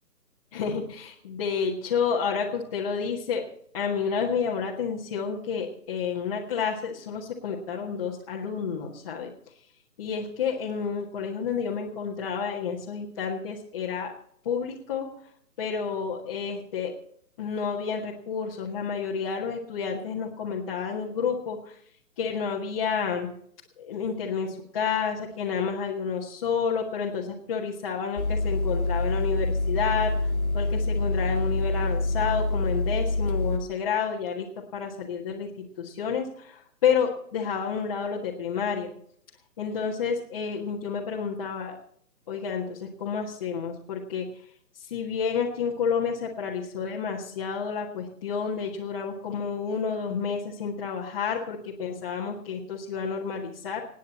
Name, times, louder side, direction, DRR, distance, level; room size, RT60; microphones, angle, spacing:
voice 1, 0.5-3.4 3.7-9.3 10.0-14.1 14.4-15.1 15.6-16.9 17.4-21.8 22.2-23.3 23.8-35.5 35.8-38.9 39.6-41.8 42.3-44.3 44.9-53.8, left 6 dB, 20° left, -4 dB, 1.7 m, -30 dB
sound 1, 28.2-33.6, left 2 dB, 60° left, 1.4 m, -26 dB
27.0 x 9.4 x 4.1 m, 0.65 s
figure-of-eight pair, 145°, 49 cm